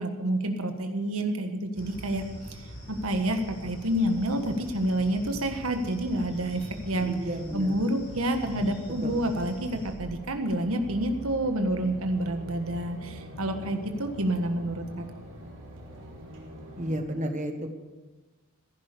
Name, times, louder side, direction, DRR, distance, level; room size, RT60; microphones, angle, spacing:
voice 1, 0.0-2.2 2.9-7.1 7.5-15.0, right 1 dB, 80° right, 5 dB, 1.5 m, -28 dB
sound 1, 1.7-9.9, equal, 60° left, 6.8 m, -43 dB
voice 2, 6.9-7.9 9.0-9.2 16.8-17.7, equal, 35° right, 6 dB, 1.6 m, -32 dB
sound 2, 8.9-16.9, equal, 60° right, 3.8 m, -44 dB
15.5 x 11.0 x 6.9 m, 1.3 s
head